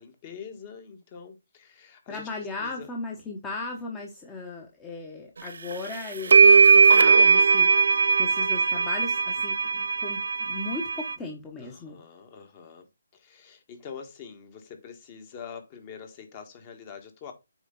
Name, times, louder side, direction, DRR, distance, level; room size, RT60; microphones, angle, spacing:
voice 1, 0.0-2.3 2.6-2.9 11.6-12.9 13.1-17.3, left 7 dB, 30° left, 1.7 m, -44 dB
voice 2, 2.1-7.7 8.0-12.0, left 3 dB, 15° left, 1.1 m, -37 dB
sound 1, 5.7-5.8 6.3-11.1, right 5 dB, 70° right, 0.5 m, -19 dB
8.1 x 4.4 x 3.9 m
hypercardioid pair, 155°, 0 cm